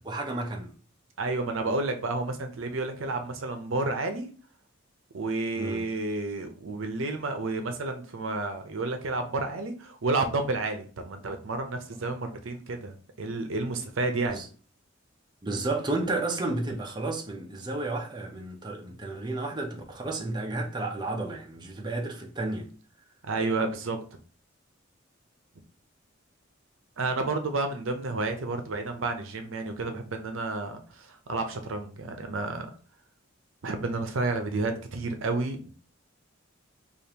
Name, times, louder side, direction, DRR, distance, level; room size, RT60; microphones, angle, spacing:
voice 1, 0.0-0.7 5.5-5.9 14.3-14.5 15.4-22.7, right 2 dB, 20° right, 0.6 m, -32 dB
voice 2, 1.2-4.3 5.1-14.4 23.2-24.0 27.0-32.7 33.6-35.6, right 3 dB, 75° right, 0.6 m, -30 dB
5.1 x 2.5 x 2.9 m
head